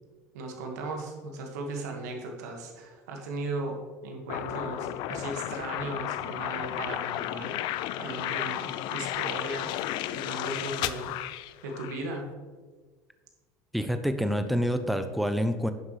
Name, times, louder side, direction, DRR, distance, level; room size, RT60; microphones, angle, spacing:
voice 1, 0.3-7.6 8.0-9.7 10.1-11.1 11.6-12.3, right 2 dB, 80° right, 2 dB, 1.8 m, -37 dB
sound 1, 4.3-12.1, left 14 dB, 60° left, 0.4 m, -33 dB
voice 2, 13.7-15.7, equal, ahead, 9 dB, 0.6 m, -27 dB
10.5 x 7.4 x 3.3 m, 1.4 s
hypercardioid pair, 85°, 9 cm